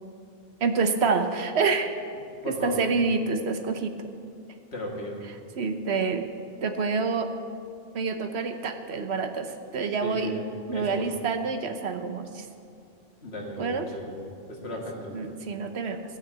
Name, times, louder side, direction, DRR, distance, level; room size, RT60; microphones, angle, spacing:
voice 1, 0.6-1.9 2.6-4.1 5.6-6.3 6.6-7.3 7.9-10.3 10.7-12.5 13.6-13.9 15.1-16.0, right 4 dB, 85° right, 7 dB, 1.2 m, -27 dB
voice 2, 2.4-2.9 4.7-5.2 10.0-11.2 13.2-14.1 14.5-15.2, left 1 dB, 90° left, -1 dB, 2.4 m, -35 dB
15.5 x 6.5 x 7.9 m, 2.4 s
omnidirectional pair, 1.1 m